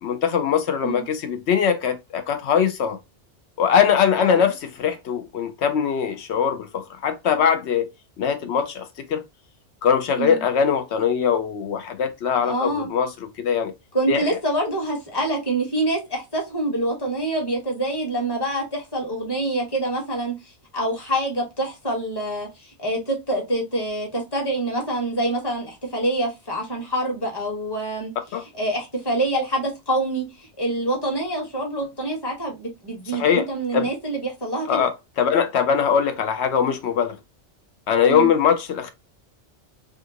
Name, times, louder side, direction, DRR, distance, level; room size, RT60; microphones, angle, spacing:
voice 1, 0.0-3.0 3.6-7.9 8.2-9.2 9.8-13.1 13.4-13.7 14.1-14.3 28.3-28.4 33.1-33.4 33.7-33.9 34.7-37.2 37.9-38.9, left 7 dB, 75° left, 0.9 m, -21 dB
voice 2, 12.4-12.9 13.9-30.2 30.6-34.9 38.1-38.3, right 1 dB, 20° left, 1.2 m, -26 dB
3.5 x 2.5 x 2.7 m
omnidirectional pair, 1.2 m